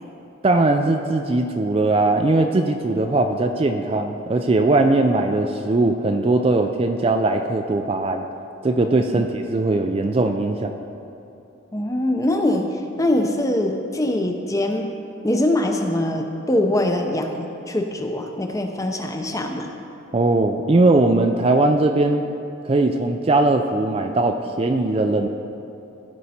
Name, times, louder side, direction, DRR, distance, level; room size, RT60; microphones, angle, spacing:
voice 1, 0.4-8.2 8.6-10.7 20.1-22.3 22.6-25.3, right 2 dB, 30° right, 5 dB, 0.3 m, -20 dB
voice 2, 11.7-12.7 13.0-14.9 15.2-19.7, left 1 dB, 15° left, 4 dB, 0.6 m, -23 dB
15.5 x 5.2 x 4.2 m, 2.8 s
head